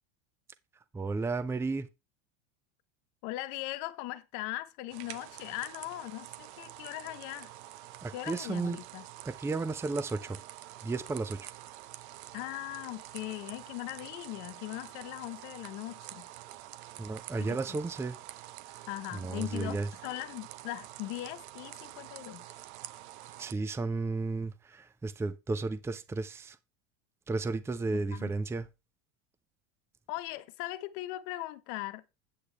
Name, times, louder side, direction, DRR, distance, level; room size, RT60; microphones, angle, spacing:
voice 1, 0.9-1.9 8.0-8.8 9.2-10.4 10.8-11.5 17.0-18.2 19.1-19.9 23.4-26.6 27.3-28.7, right 3 dB, 5° right, 0.5 m, -33 dB
voice 2, 3.2-7.5 8.1-9.0 12.3-16.3 17.4-17.8 18.9-22.4 28.1-28.3 30.1-32.2, left 17 dB, 60° left, 1.1 m, -39 dB
sound 1, 4.9-23.5, right 14 dB, 70° right, 0.9 m, -47 dB
8.4 x 8.0 x 3.4 m
supercardioid pair, 110°, 35 cm